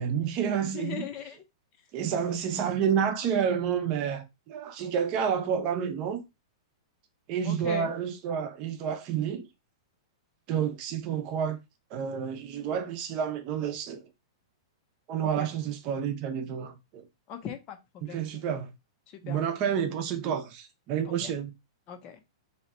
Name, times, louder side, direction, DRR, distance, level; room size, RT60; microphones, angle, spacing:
voice 1, 0.0-1.1 1.9-6.2 7.3-9.5 10.5-11.6 11.9-14.1 15.1-17.1 18.0-18.7 19.2-21.5, right 8 dB, 35° right, 0.7 m, -29 dB
voice 2, 0.6-1.4 2.5-2.6 7.4-7.9 15.2-15.5 17.3-18.4 19.1-19.4 21.0-21.3 21.9-22.2, left 8 dB, 30° left, 0.7 m, -40 dB
2.8 x 2.4 x 4.2 m
hypercardioid pair, 155°, 3 cm